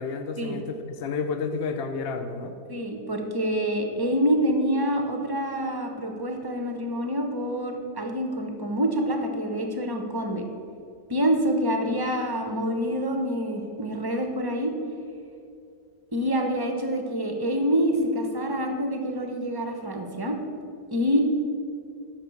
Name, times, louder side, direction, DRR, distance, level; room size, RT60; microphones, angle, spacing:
voice 1, 0.0-2.5, left 4 dB, 50° left, 6 dB, 0.7 m, -31 dB
voice 2, 2.7-10.5 11.1-14.7 16.1-20.4 20.9-21.2, equal, 15° right, 3 dB, 0.8 m, -26 dB
10.5 x 6.0 x 7.0 m, 2.5 s
omnidirectional pair, 1.9 m